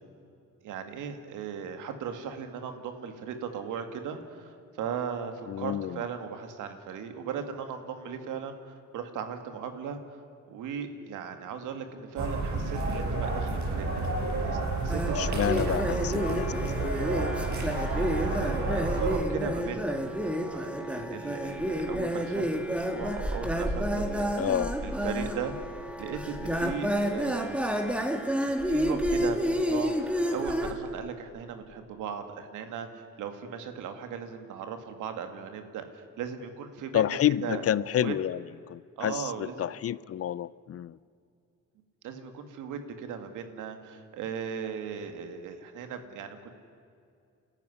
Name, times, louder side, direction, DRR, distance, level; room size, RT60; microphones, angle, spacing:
voice 1, 0.6-10.0 10.5-14.1 14.4-14.6 14.8-16.0 18.0-24.5 24.8-25.6 26.0-27.6 28.7-37.6 37.9-38.1 39.0-39.7 42.0-46.5, right 7 dB, 90° right, 7 dB, 2.3 m, -38 dB
voice 2, 5.5-6.0 15.2-16.9 24.4-24.7 36.9-38.4 38.7-41.0, left 10 dB, 50° left, 20 dB, 0.6 m, -29 dB
sound 1, 12.2-19.2, right 3 dB, 70° right, 6.0 m, -30 dB
sound 2, 14.9-30.7, equal, 5° right, 2.7 m, -30 dB
30.0 x 14.0 x 10.0 m, 2.4 s
cardioid pair, 90°, 30 cm